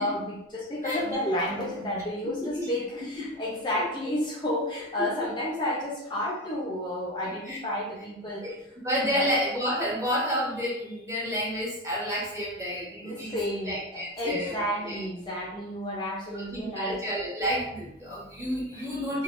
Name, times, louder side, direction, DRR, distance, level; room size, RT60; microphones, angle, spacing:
voice 1, 0.0-8.4 9.1-9.3 13.0-17.0, left 1 dB, 25° left, -4 dB, 0.5 m, -31 dB
voice 2, 2.2-2.7 3.2-3.4 3.8-3.9 5.0-5.3 7.4-7.6 8.4-8.6 8.8-13.4 13.6-15.1 16.3-19.2, equal, 20° right, -6 dB, 1.1 m, -30 dB
3.5 x 2.1 x 2.4 m, 0.80 s
head